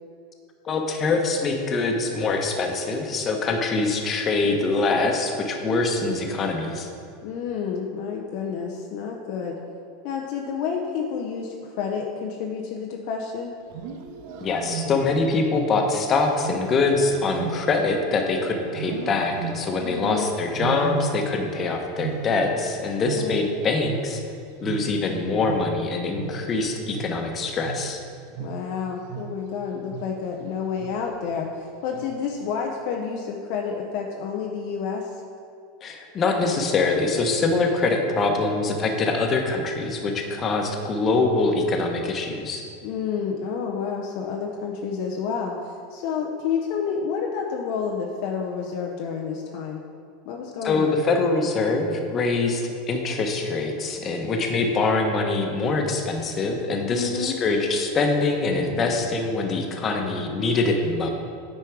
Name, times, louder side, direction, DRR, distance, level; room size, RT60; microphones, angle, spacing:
voice 1, 0.6-6.9 14.4-24.2 24.6-28.0 35.8-42.6 50.6-61.1, left 3 dB, 35° left, 3 dB, 1.1 m, -24 dB
voice 2, 7.2-9.6 10.0-13.5 19.8-20.3 23.1-23.4 28.4-35.2 42.8-49.8 50.3-51.0 56.9-57.4, left 6 dB, 55° left, 0 dB, 0.7 m, -29 dB
Wild animals, 13.6-15.3 16.4-18.3 18.7-19.9 20.5-21.6 21.8-24.4 24.6-29.5 29.9-30.3 30.8-31.2 31.9-32.4, right 5 dB, 60° right, 0.6 m, -35 dB
9.2 x 4.4 x 4.7 m, 2.4 s
hypercardioid pair, 85°, 0 cm